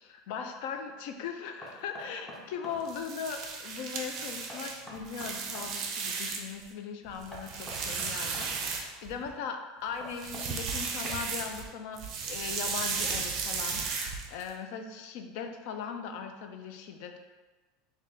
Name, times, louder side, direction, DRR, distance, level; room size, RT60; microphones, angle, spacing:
voice 1, 0.3-17.2, left 6 dB, 60° left, 6 dB, 0.4 m, -39 dB
Knock, 1.6-2.8 4.5-5.7 7.3-8.5 10.0-11.4, equal, 5° left, 0.6 m, -45 dB
sound 1, 2.8-6.6 7.1-9.3 10.1-11.7 12.0-14.5, right 5 dB, 35° right, 0.5 m, -35 dB
3.3 x 2.7 x 3.8 m, 1.2 s
supercardioid pair, 165°, 0 cm